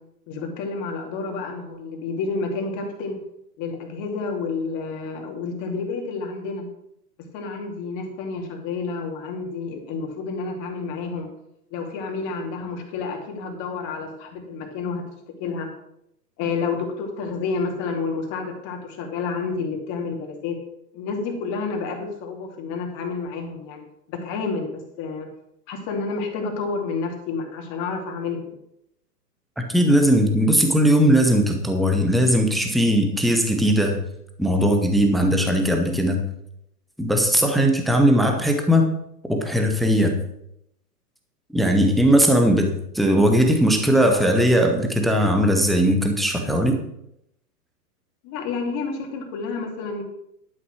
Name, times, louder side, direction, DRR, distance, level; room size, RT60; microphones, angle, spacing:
voice 1, 0.3-3.2 3.6-6.6 7.3-11.3 11.7-15.0 15.4-15.7 16.4-20.6 20.9-23.8 24.1-25.3 25.7-28.5 48.2-50.0, left 4 dB, 35° left, 2 dB, 2.7 m, -29 dB
voice 2, 29.6-34.0 34.4-36.2 37.0-38.9 39.3-40.2 41.5-46.8, equal, ahead, 4 dB, 0.4 m, -19 dB
11.5 x 5.9 x 6.2 m, 0.78 s
hypercardioid pair, 120°, 47 cm